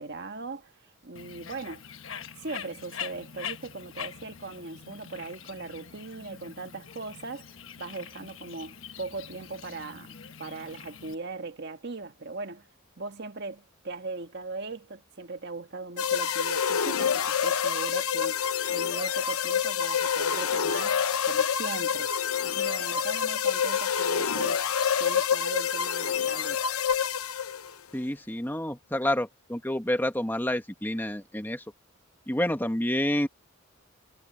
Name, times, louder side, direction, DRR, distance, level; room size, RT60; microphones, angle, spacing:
voice 1, 0.0-1.8 2.3-12.7 13.0-18.4 18.7-22.1 22.4-24.6 25.0-26.6, right 3 dB, 50° right, 1.6 m, -39 dB
Bird, 1.1-11.1, left 8 dB, 65° left, 1.2 m, -43 dB
sound 1, 16.0-27.7, left 8 dB, 85° left, 0.9 m, -27 dB
voice 2, 27.9-31.6 32.3-33.3, left 1 dB, 10° left, 1.4 m, -28 dB
head